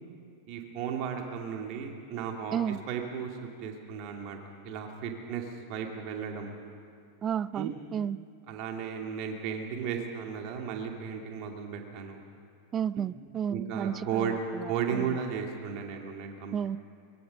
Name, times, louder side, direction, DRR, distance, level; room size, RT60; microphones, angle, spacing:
voice 1, 0.5-4.4 4.6-6.6 7.5-7.7 8.5-12.2 13.5-14.3 14.6-16.6, right 7 dB, 40° right, 2 dB, 2.7 m, -35 dB
voice 2, 2.5-2.8 7.2-8.2 12.7-15.2 16.5-16.8, right 9 dB, 25° right, 20 dB, 0.4 m, -32 dB
23.5 x 21.5 x 5.4 m, 2.3 s
figure-of-eight pair, 90°, 0 cm